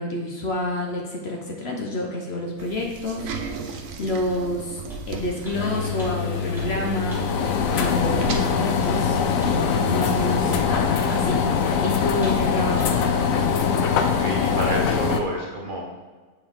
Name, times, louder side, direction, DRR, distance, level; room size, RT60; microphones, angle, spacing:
voice 1, 0.0-4.8 5.1-11.4 11.8-12.9, left 1 dB, 55° left, 0 dB, 1.1 m, -29 dB
sound 1, 2.6-10.8, right 5 dB, 75° right, 1.1 m, -35 dB
sound 2, 4.3-4.4 4.9-5.1 5.4-5.6 6.0-6.1 6.6-6.7 7.1-7.2 7.7-7.9 8.3-8.5 8.8-9.0 9.4-9.6 10.0-10.1 10.5-10.7 11.1-11.3 11.7-11.8 12.2-12.5 12.8-12.9 13.4-13.5, right 1 dB, ahead, 1.6 m, -39 dB
sound 3, 5.5-15.2, left 6 dB, 75° left, 1.0 m, -23 dB
voice 2, 14.0-15.8, right 1 dB, 40° right, -2 dB, 1.0 m, -29 dB
7.1 x 4.7 x 3.6 m, 1.4 s
omnidirectional pair, 1.4 m